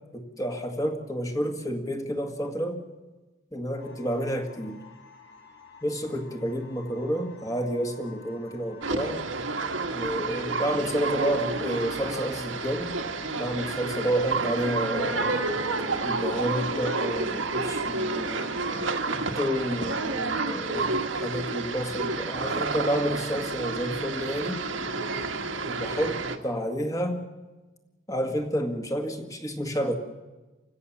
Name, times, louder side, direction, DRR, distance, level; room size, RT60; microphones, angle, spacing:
voice 1, 0.1-2.8 3.5-4.8 5.8-9.2 9.9-12.9 13.4-15.5 16.0-18.5 19.1-24.6 25.6-27.2 28.1-30.0, equal, 20° left, 4 dB, 1.8 m, -30 dB
sound 1, 3.8-18.7, left 4 dB, 55° left, 2.8 m, -52 dB
sound 2, 8.8-26.4, right 3 dB, 85° right, 1.6 m, -30 dB
29.5 x 16.5 x 7.1 m, 1.2 s
head